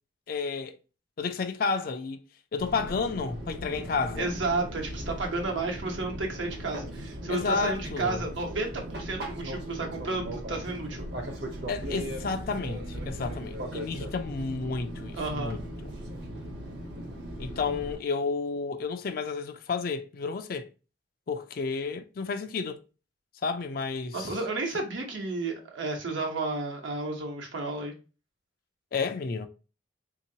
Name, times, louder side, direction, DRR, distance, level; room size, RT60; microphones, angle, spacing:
voice 1, 0.3-0.8 1.2-2.2 2.5-4.3 7.3-8.2 11.7-15.6 17.4-20.7 21.3-22.8 23.4-24.4 28.9-29.5, left 4 dB, 50° left, 0.4 m, -31 dB
Fixed-wing aircraft airplane, 2.6-18.0, right 1 dB, 60° right, 0.9 m, -38 dB
voice 2, 4.2-11.1 15.1-15.6 24.1-27.9, right 3 dB, 85° right, 1.0 m, -32 dB
3.6 x 2.9 x 2.7 m
head